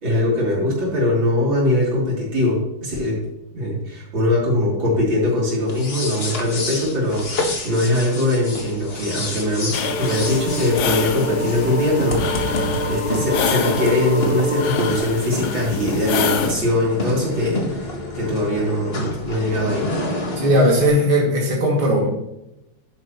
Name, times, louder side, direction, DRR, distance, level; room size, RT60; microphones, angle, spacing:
voice 1, 0.0-3.2 3.5-17.9 18.1-19.9, left 1 dB, 75° right, -5 dB, 4.2 m, -21 dB
sound 1, 5.6-20.9, left 2 dB, 35° left, 1.6 m, -29 dB
sound 2, 9.7-16.5, left 6 dB, 65° left, 1.2 m, -27 dB
sound 3, 9.8-15.0, equal, 10° right, 3.0 m, -27 dB
voice 2, 20.4-22.1, equal, 25° right, -3 dB, 2.5 m, -17 dB
11.5 x 9.1 x 3.1 m, 0.89 s
omnidirectional pair, 2.1 m